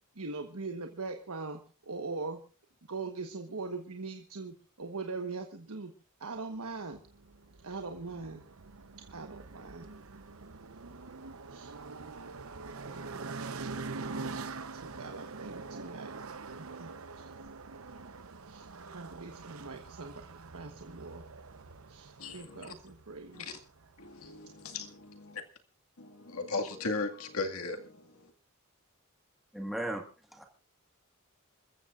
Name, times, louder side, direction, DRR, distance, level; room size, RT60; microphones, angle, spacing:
voice 1, 0.1-1.6 1.9-2.4 2.9-5.9 6.2-7.0 7.6-8.4 9.1-9.9 11.5-11.7 12.1-13.4 14.3-16.2 16.5-16.9 17.2-17.3 18.5-21.2 21.9-23.4, right 3 dB, 90° right, 1.3 m, -42 dB
sound 1, 6.9-24.4, right 4 dB, 70° right, 0.9 m, -44 dB
voice 2, 22.2-22.7 23.3-23.6 24.0-25.4 26.0-28.3, left 3 dB, 75° left, 2.1 m, -37 dB
voice 3, 29.5-30.0 30.3-30.5, right 1 dB, ahead, 1.7 m, -35 dB
28.0 x 14.5 x 2.5 m
head